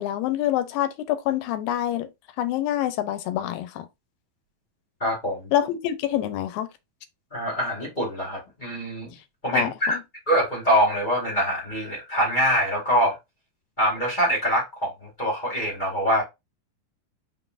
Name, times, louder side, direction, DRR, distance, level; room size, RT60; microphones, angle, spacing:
voice 1, 0.0-2.1 2.4-3.9 5.5-6.7 9.5-10.0, left 12 dB, 85° left, 2.4 m, -26 dB
voice 2, 5.0-5.5 7.3-9.2 9.4-10.0 10.3-13.2 13.8-16.2, equal, 20° left, 1.4 m, -24 dB
5.4 x 4.0 x 2.5 m
omnidirectional pair, 4.1 m